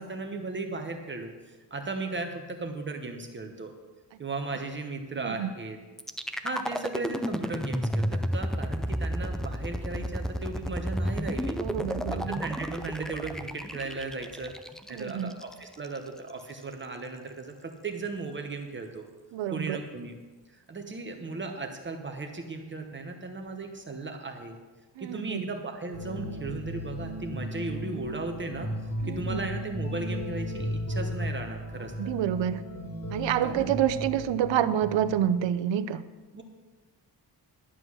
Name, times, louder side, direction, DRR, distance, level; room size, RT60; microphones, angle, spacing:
voice 1, 0.0-3.7 4.2-5.8 6.4-11.6 12.1-14.5 14.9-19.1 19.5-20.1 20.5-24.6 25.0-28.7 29.0-31.9 33.4-33.7 36.3-36.4, right 3 dB, 25° right, 4 dB, 0.9 m, -36 dB
voice 2, 5.1-5.5 11.6-12.4 14.9-15.4 19.3-19.8 25.0-25.4 29.0-29.5 32.0-32.6 33.1-36.0, right 10 dB, 85° right, 12 dB, 0.7 m, -28 dB
sound 1, 6.0-16.0, equal, ahead, 0.3 m, -32 dB
sound 2, 25.9-35.5, equal, 45° left, 3.4 m, -35 dB
11.5 x 7.7 x 6.2 m, 1.3 s
wide cardioid pair, 150°, 43 cm